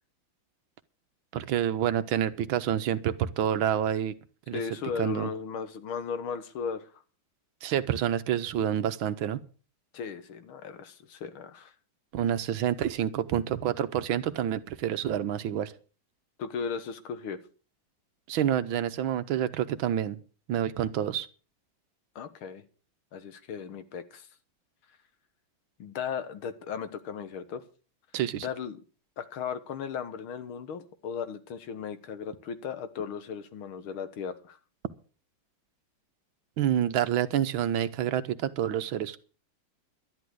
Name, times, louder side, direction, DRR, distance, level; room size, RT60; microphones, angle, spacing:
voice 1, 1.3-4.1 4.5-4.6 5.0-5.3 7.6-9.4 12.1-15.7 18.3-20.2 20.5-21.3 28.1-28.5 36.6-39.2, right 10 dB, 75° right, 1.7 m, -28 dB
voice 2, 4.5-6.9 9.9-11.7 16.4-17.4 22.2-22.6 23.1-24.3 25.8-27.6 28.4-28.8 29.2-34.6, left 6 dB, 80° left, 2.1 m, -36 dB
12.0 x 11.0 x 6.3 m
omnidirectional pair, 2.2 m